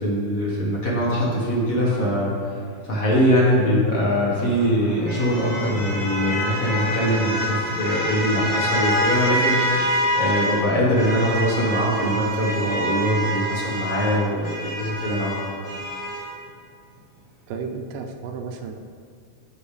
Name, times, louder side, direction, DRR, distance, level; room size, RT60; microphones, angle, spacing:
voice 1, 0.0-2.4 2.9-9.8 10.2-15.6, equal, 45° left, -5 dB, 1.1 m, -22 dB
sound 1, 4.0-10.6 10.9-16.3, equal, 10° right, 0.9 m, -26 dB
voice 2, 17.5-18.7, right 5 dB, 75° right, 4 dB, 2.2 m, -32 dB
15.5 x 6.3 x 3.4 m, 2.2 s
omnidirectional pair, 4.1 m